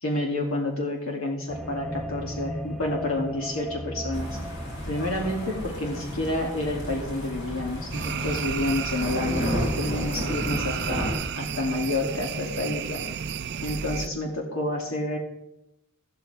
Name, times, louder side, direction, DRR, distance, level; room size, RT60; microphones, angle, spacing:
voice 1, 0.0-4.4 4.9-11.1 11.3-13.0 13.6-15.2, left 1 dB, 75° left, 0 dB, 2.7 m, -29 dB
sound 1, 1.5-6.5, equal, 5° left, 0.8 m, -37 dB
sound 2, 4.1-11.1, equal, 55° left, 5.6 m, -32 dB
sound 3, 7.9-14.1, right 7 dB, 55° right, 0.5 m, -32 dB
14.0 x 13.0 x 3.5 m, 0.87 s
head